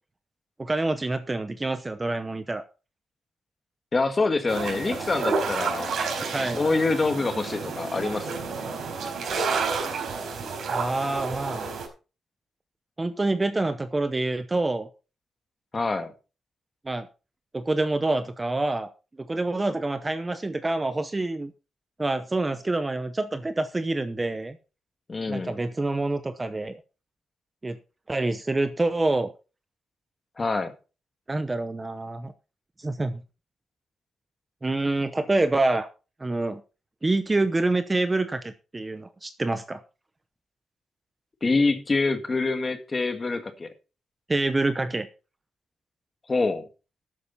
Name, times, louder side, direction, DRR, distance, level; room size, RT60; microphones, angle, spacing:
voice 1, 0.6-2.6 6.3-6.6 10.7-11.7 13.0-14.9 16.8-17.1 17.5-18.9 19.2-21.5 22.0-24.6 25.3-26.8 27.6-27.8 28.1-29.3 31.3-32.3 32.8-33.2 34.6-35.9 36.2-36.6 37.0-39.8 44.3-45.1, right 2 dB, 15° right, 0.8 m, -26 dB
voice 2, 3.9-6.0 6.4-8.4 15.7-16.1 25.1-25.6 30.4-30.7 41.4-43.7 46.3-46.7, left 3 dB, 25° left, 1.7 m, -26 dB
sound 1, 4.5-11.9, right 4 dB, 60° right, 4.9 m, -30 dB
13.0 x 9.8 x 4.2 m
wide cardioid pair, 160°, 0 cm